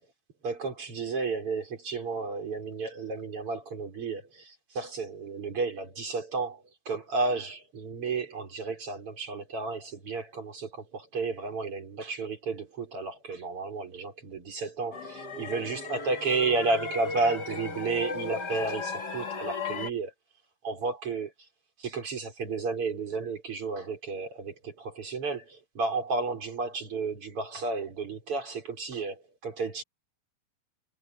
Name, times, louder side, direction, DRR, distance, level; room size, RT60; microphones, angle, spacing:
voice 1, 0.4-20.1 20.6-21.3 21.8-29.8, right 3 dB, 30° right, 5.5 m, -32 dB
sound 1, 14.9-19.9, left 4 dB, 90° left, 0.9 m, -36 dB
omnidirectional pair, 5.8 m